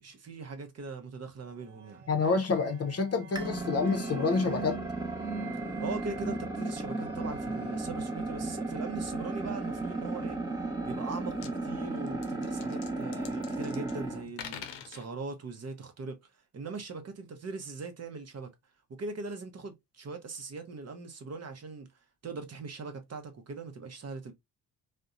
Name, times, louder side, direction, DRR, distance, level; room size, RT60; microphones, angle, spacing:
voice 1, 0.0-2.0 5.8-10.4 10.8-18.5 18.9-21.9 22.2-24.3, right 4 dB, 40° right, 0.7 m, -41 dB
sound 1, 1.4-15.3, right 5 dB, 80° right, 0.8 m, -52 dB
voice 2, 2.1-4.8, left 4 dB, 35° left, 0.6 m, -28 dB
sound 2, 3.3-14.2, right 2 dB, 10° right, 0.9 m, -35 dB
sound 3, 11.0-11.1 11.3-11.5 12.1-14.0 14.3-15.1, left 9 dB, 85° left, 0.6 m, -44 dB
2.5 x 2.1 x 2.4 m
supercardioid pair, 60°, 42 cm